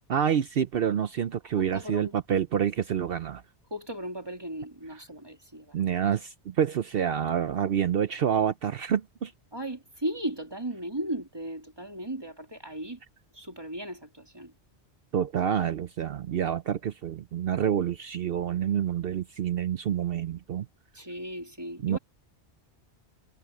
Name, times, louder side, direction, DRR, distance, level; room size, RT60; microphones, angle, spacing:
voice 1, 0.1-3.4 5.7-9.3 15.1-20.7 21.8-22.0, right 9 dB, 60° right, 0.8 m, -27 dB
voice 2, 1.6-2.1 3.7-5.7 9.5-13.0 13.3-14.5 20.9-22.0, right 1 dB, 20° right, 2.5 m, -36 dB
omnidirectional pair, 1.2 m